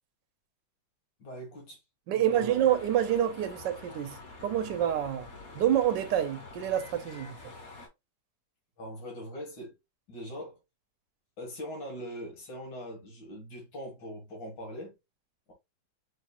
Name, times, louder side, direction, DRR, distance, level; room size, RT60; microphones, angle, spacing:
voice 1, 1.2-1.8 2.1-2.5 8.8-9.7 10.1-10.6 11.4-14.9, equal, 85° left, 2.5 m, -41 dB
voice 2, 2.1-4.2 4.4-5.3 5.5-7.4, right 10 dB, 85° right, 1.3 m, -27 dB
sound 1, 2.3-7.9, left 3 dB, 55° left, 1.7 m, -47 dB
6.0 x 2.9 x 2.3 m
omnidirectional pair, 1.9 m